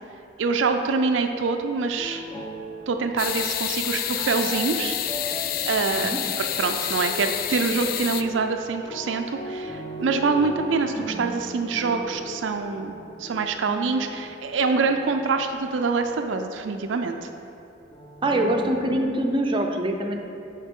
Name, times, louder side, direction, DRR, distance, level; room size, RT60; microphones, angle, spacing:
voice 1, 0.4-2.2 2.9-5.0 5.7-12.9 13.2-17.3, right 4 dB, 80° right, 6 dB, 0.4 m, -25 dB
sound 1, 2.0-16.6 17.9-19.1, equal, 25° left, 0.8 m, -38 dB
sound 2, 3.2-8.2, left 11 dB, 50° left, 0.3 m, -28 dB
voice 2, 18.2-20.2, right 1 dB, 25° right, 2 dB, 0.5 m, -24 dB
11.0 x 4.0 x 3.7 m, 2.8 s
head